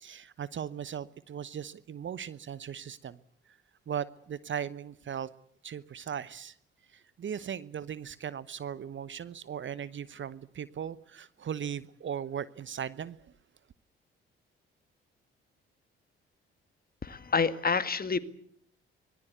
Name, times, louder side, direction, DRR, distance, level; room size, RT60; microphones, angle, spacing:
voice 1, 0.0-3.2 3.9-5.3 5.6-6.6 6.9-13.3, right 8 dB, 40° right, 1.0 m, -38 dB
voice 2, 17.0-18.2, left 5 dB, 30° left, 2.0 m, -28 dB
24.5 x 20.5 x 8.2 m
figure-of-eight pair, 40°, 30 cm